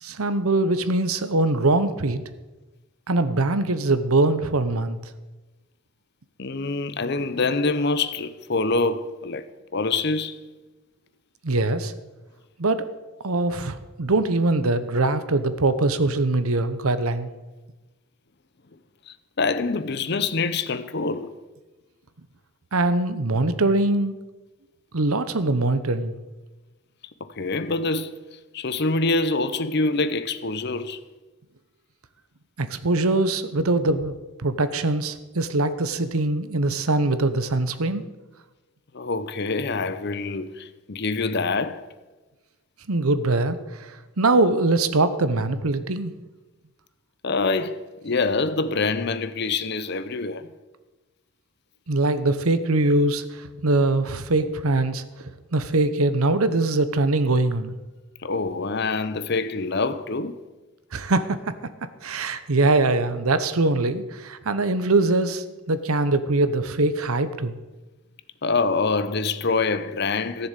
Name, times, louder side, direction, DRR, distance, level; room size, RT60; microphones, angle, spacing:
voice 1, 0.0-2.2 3.1-5.0 11.4-11.9 12.6-12.8 13.2-17.3 22.7-24.1 24.9-26.1 32.6-34.1 34.4-38.0 42.9-43.9 44.2-46.1 51.9-55.0 55.5-57.7 60.9-61.5 62.0-67.5, right 2 dB, 90° right, 1.0 m, -22 dB
voice 2, 6.4-10.4 19.1-21.4 27.2-28.2 28.5-31.0 38.9-41.9 47.2-50.5 58.2-60.4 68.4-70.5, left 3 dB, 50° left, 0.7 m, -25 dB
14.5 x 7.1 x 8.1 m
head